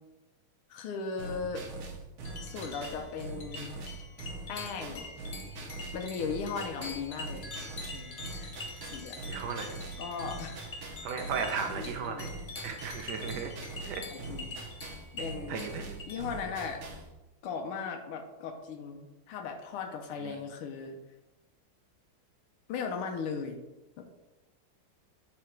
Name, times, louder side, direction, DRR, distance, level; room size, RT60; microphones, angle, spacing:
voice 1, 0.7-1.7 2.4-3.8 4.5-5.2 5.9-7.5 7.9-8.5 8.8-9.3 10.0-10.7 11.5-12.3 14.1-14.6 15.1-15.6 16.1-16.8 17.4-21.0 22.7-23.6 24.0-24.1, left 5 dB, 90° left, 5 dB, 1.6 m, -37 dB
sound 1, 1.2-17.1, right 3 dB, 85° right, 1.9 m, -43 dB
sound 2, 2.2-16.2, left 3 dB, 60° left, 0.6 m, -45 dB
voice 2, 9.3-9.8 11.0-12.3 12.6-13.5 13.8-14.0 15.5-16.0 20.2-20.3, right 6 dB, 70° right, 5 dB, 1.1 m, -35 dB
7.4 x 3.9 x 4.5 m, 1.0 s
omnidirectional pair, 2.3 m